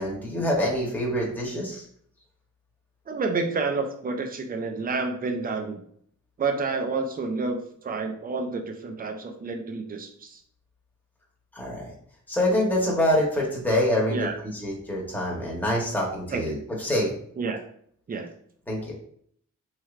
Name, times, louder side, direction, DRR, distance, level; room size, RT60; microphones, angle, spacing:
voice 1, 0.0-1.8 11.5-11.9 12.3-17.1 18.7-18.9, left 1 dB, 5° left, -4 dB, 0.9 m, -26 dB
voice 2, 3.1-5.8 6.4-10.4 14.1-14.3 16.3-16.4 17.4-17.6 18.1-18.3, right 4 dB, 30° right, 5 dB, 0.4 m, -29 dB
4.3 x 3.2 x 2.4 m, 0.63 s
wide cardioid pair, 175°, 31 cm